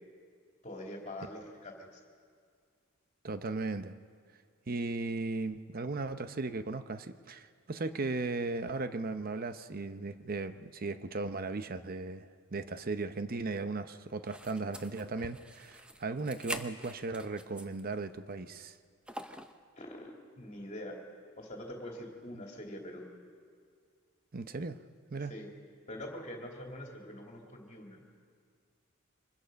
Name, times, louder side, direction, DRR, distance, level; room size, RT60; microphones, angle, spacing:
voice 1, 0.6-2.0 19.8-21.0 21.4-23.0 25.3-25.5 25.9-28.2, left 1 dB, 35° left, 0 dB, 2.8 m, -44 dB
voice 2, 3.2-3.9 4.7-18.7 24.3-24.8 25.1-25.3, right 3 dB, 40° right, 10 dB, 0.7 m, -37 dB
sound 1, 14.3-17.9 18.3-18.4 19.1-19.6, right 1 dB, 5° right, 0.6 m, -44 dB
24.5 x 20.5 x 5.3 m, 2.1 s
head